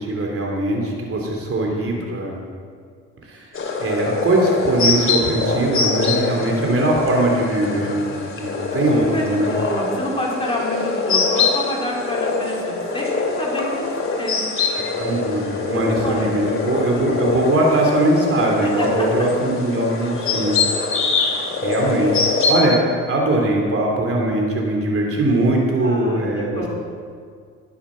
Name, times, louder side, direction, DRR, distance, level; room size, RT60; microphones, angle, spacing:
voice 1, 0.0-2.4 3.3-3.5 3.8-9.5 15.0-20.6 21.6-26.7, right 1 dB, 50° right, -1 dB, 2.9 m, -21 dB
sound 1, 3.5-22.6, left 4 dB, 45° left, 2.5 m, -23 dB
voice 2, 6.3-7.2 8.7-14.5 15.7-16.4 18.6-18.9 25.8-26.7, left 1 dB, 15° left, -4 dB, 4.0 m, -29 dB
19.0 x 7.2 x 6.2 m, 2.1 s
cardioid pair, 90°, 30 cm